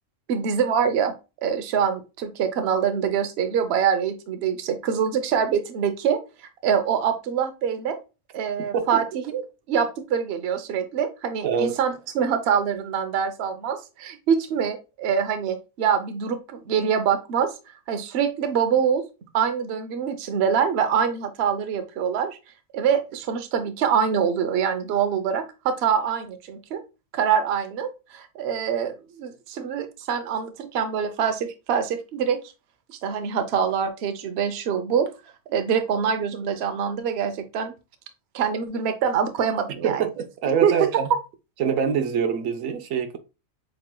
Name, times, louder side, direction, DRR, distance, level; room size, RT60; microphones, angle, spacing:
voice 1, 0.3-1.1 1.4-6.2 6.6-8.0 8.3-9.4 9.7-17.5 17.9-19.0 19.3-22.4 22.7-26.8 27.1-32.4 32.9-35.1 35.5-37.7 38.3-40.0 40.6-41.0, right 7 dB, 60° right, 0.9 m, -24 dB
voice 2, 11.4-11.8 39.8-41.1 41.6-43.2, right 7 dB, 80° right, 1.1 m, -25 dB
7.3 x 3.2 x 2.2 m
omnidirectional pair, 1.3 m